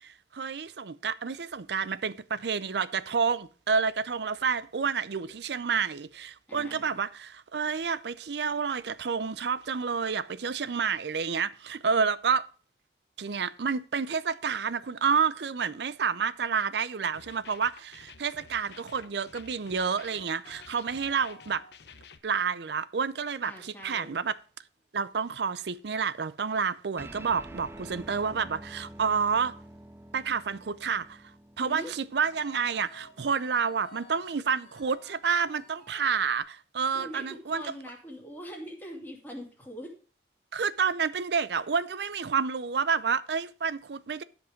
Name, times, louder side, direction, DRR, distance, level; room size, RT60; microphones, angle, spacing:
voice 1, 0.0-12.5 13.2-21.6 22.2-24.3 24.9-29.5 30.1-31.2 31.6-37.6 40.5-44.2, right 6 dB, 75° right, 0.6 m, -29 dB
voice 2, 6.5-7.0 23.4-24.2 31.6-31.9 36.9-39.9, equal, 10° left, 2.4 m, -42 dB
sound 1, 17.1-22.2, left 5 dB, 70° left, 0.9 m, -52 dB
sound 2, 20.0-21.9 22.4-22.7 23.1-23.4 23.8-23.9 24.1-24.3 28.3-28.6 29.0-29.1 29.3-29.6 30.4-30.7 32.1-36.4, left 3 dB, 35° left, 1.4 m, -53 dB
sound 3, 27.0-33.7, right 1 dB, 15° right, 0.4 m, -48 dB
12.0 x 5.3 x 5.1 m
head